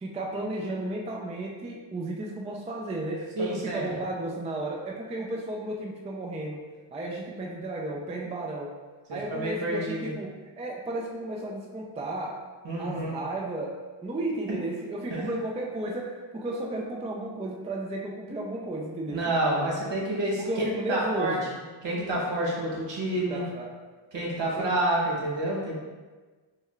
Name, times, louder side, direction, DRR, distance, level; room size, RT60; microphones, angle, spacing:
voice 1, 0.0-6.6 6.9-8.7 9.1-12.4 12.8-13.7 14.0-19.3 20.4-21.5 23.3-23.7 24.6-24.7, right 1 dB, 15° right, -1 dB, 0.3 m, -33 dB
voice 2, 3.4-3.8 9.3-10.1 12.6-13.2 15.1-15.3 19.1-20.4 20.9-21.4 21.8-23.4 24.1-25.8, right 1 dB, 65° right, -4 dB, 1.1 m, -28 dB
4.6 x 2.2 x 2.3 m, 1.3 s
cardioid pair, 80°, 47 cm